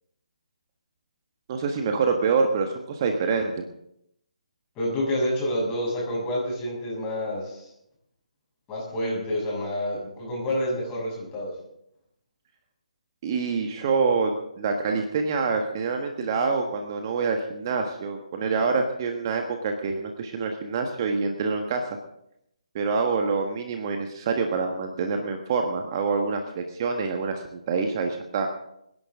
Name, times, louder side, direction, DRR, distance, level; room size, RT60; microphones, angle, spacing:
voice 1, 1.5-3.6 13.2-21.9 22.7-28.5, right 4 dB, 35° right, 4 dB, 1.5 m, -26 dB
voice 2, 4.8-7.7 8.7-11.5, left 1 dB, 15° left, -4 dB, 7.3 m, -28 dB
25.5 x 11.0 x 3.7 m, 0.76 s
figure-of-eight pair, 140°, 4 cm